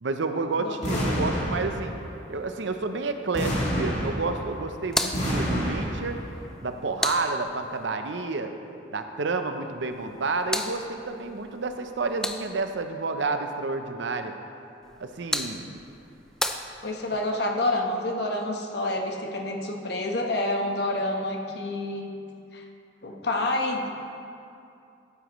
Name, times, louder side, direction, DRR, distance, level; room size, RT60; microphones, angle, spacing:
voice 1, 0.0-1.9 2.3-6.2 6.6-8.5 8.9-14.3 15.0-15.8, right 3 dB, 75° right, 7 dB, 0.6 m, -30 dB
voice 2, 0.6-1.1 16.8-22.1 22.5-22.6 23.0-23.9, left 1 dB, 60° left, 1 dB, 1.1 m, -28 dB
sound 1, 0.8-2.1 3.3-4.6 5.1-6.2, equal, 40° left, 2.3 m, -28 dB
sound 2, 4.8-7.9 9.9-12.8 14.8-17.3, left 1 dB, 5° left, 0.3 m, -35 dB
12.0 x 9.5 x 3.1 m, 2.6 s
head